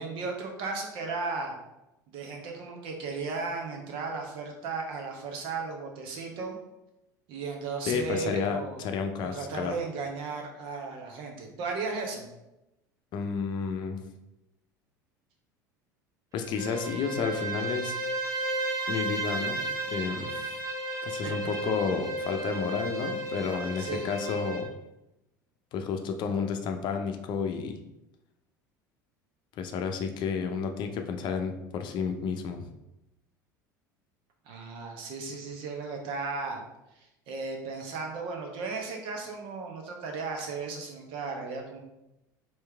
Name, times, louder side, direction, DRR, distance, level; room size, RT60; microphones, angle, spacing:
voice 1, 0.0-1.6 2.1-6.6 7.3-8.9 9.2-12.3 21.2-21.3 23.8-24.1 34.4-36.6 37.0-41.8, right 4 dB, 55° right, 2 dB, 1.0 m, -35 dB
voice 2, 7.9-9.8 13.1-14.0 16.3-18.1 18.9-20.5 21.0-24.7 25.7-27.8 29.6-32.6, left 6 dB, 45° left, 5 dB, 0.6 m, -31 dB
Bowed string instrument, 16.4-24.7, right 2 dB, 30° right, 1.0 m, -33 dB
4.6 x 3.1 x 3.4 m, 0.93 s
figure-of-eight pair, 70°, 11 cm